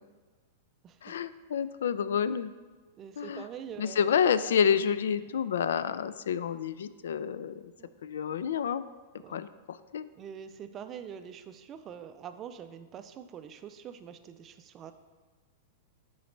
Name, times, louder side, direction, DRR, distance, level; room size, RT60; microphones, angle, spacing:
voice 1, 1.0-2.5 3.2-3.5 3.8-7.7 8.0-8.8 9.3-10.0, left 7 dB, 90° left, 14 dB, 0.3 m, -29 dB
voice 2, 3.0-4.1 5.9-6.1 7.8-7.9 9.2-9.3 10.2-14.9, right 8 dB, 20° right, 9 dB, 0.3 m, -44 dB
9.3 x 4.0 x 3.2 m, 1.3 s
supercardioid pair, 165°, 0 cm